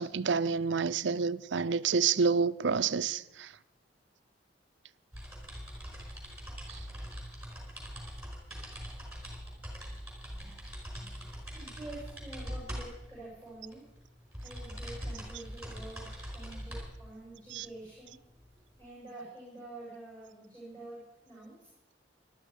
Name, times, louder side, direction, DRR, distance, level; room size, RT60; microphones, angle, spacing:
voice 1, 0.0-3.5 17.5-17.6, right 5 dB, 70° right, 0.6 m, -28 dB
sound 1, 5.1-18.8, equal, 5° right, 5.1 m, -43 dB
voice 2, 10.9-11.3 11.5-13.9 14.4-18.2 18.8-21.7, right 2 dB, 10° left, 7.9 m, -48 dB
20.5 x 12.5 x 5.0 m
head